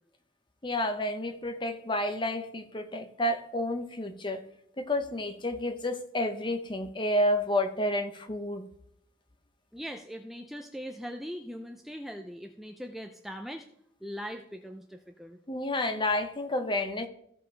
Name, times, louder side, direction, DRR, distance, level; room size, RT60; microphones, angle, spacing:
voice 1, 0.6-4.4 4.8-8.7 15.5-17.1, left 1 dB, 25° left, 7 dB, 0.8 m, -30 dB
voice 2, 9.7-13.7 14.0-15.4, equal, ahead, 4 dB, 0.4 m, -40 dB
15.5 x 5.2 x 3.3 m, 0.73 s
head